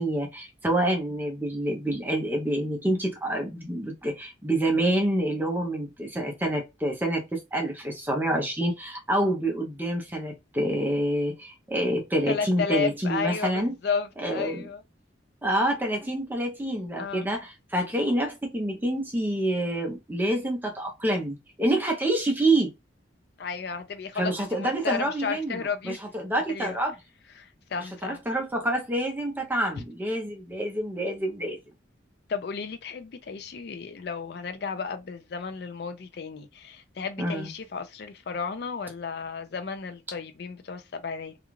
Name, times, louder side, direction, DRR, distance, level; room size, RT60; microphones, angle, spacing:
voice 1, 0.0-13.7 14.2-14.6 15.4-22.7 24.2-26.9 28.0-31.6 37.2-37.5, right 1 dB, 10° right, 0.5 m, -27 dB
voice 2, 12.3-14.8 17.0-17.3 23.4-26.0 26.5-26.8 27.4-28.2 32.3-41.4, left 5 dB, 55° left, 0.4 m, -33 dB
2.4 x 2.3 x 3.0 m
head